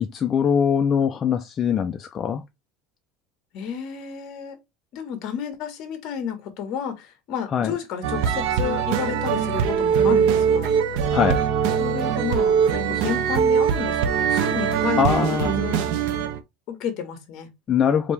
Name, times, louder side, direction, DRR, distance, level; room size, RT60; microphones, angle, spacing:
voice 1, 0.1-2.4 7.5-7.7 11.1-11.4 15.0-15.6 17.7-18.1, left 7 dB, 25° left, 0.4 m, -22 dB
voice 2, 3.5-4.6 4.9-10.7 11.8-15.8 16.7-17.5, left 7 dB, 45° left, 1.3 m, -31 dB
sound 1, 8.0-16.4, right 7 dB, 65° right, 0.8 m, -22 dB
5.1 x 2.8 x 3.2 m
cardioid pair, 165°, 0 cm